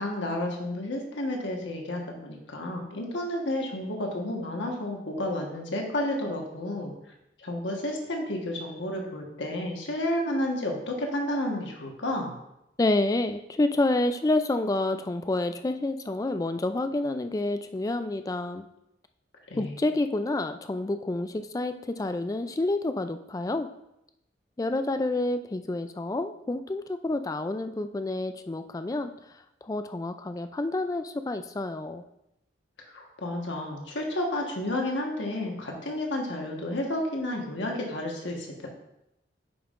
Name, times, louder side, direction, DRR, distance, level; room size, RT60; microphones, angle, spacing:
voice 1, 0.0-6.9 7.4-12.4 19.5-19.8 32.9-38.7, left 1 dB, 80° left, 1 dB, 1.3 m, -31 dB
voice 2, 12.8-18.6 19.6-23.7 24.6-29.1 29.6-32.0, left 2 dB, 20° left, 9 dB, 0.3 m, -28 dB
9.3 x 5.5 x 2.5 m, 0.84 s
head